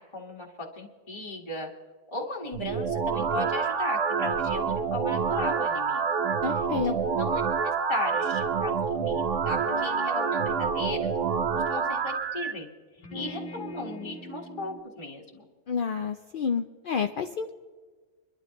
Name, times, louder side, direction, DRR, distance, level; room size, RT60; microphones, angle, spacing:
voice 1, 0.0-1.7 2.1-6.1 6.8-11.1 11.7-12.7 13.1-15.4, left 2 dB, 20° left, -2 dB, 1.6 m, -36 dB
sound 1, 2.5-12.5, right 6 dB, 60° right, 1.1 m, -27 dB
voice 2, 6.4-6.9 15.7-17.5, left 6 dB, 70° left, 5 dB, 0.5 m, -29 dB
sound 2, 9.6-12.0 13.0-14.8, left 1 dB, 40° left, 1.5 m, -41 dB
24.0 x 12.0 x 3.0 m, 1.4 s
omnidirectional pair, 1.6 m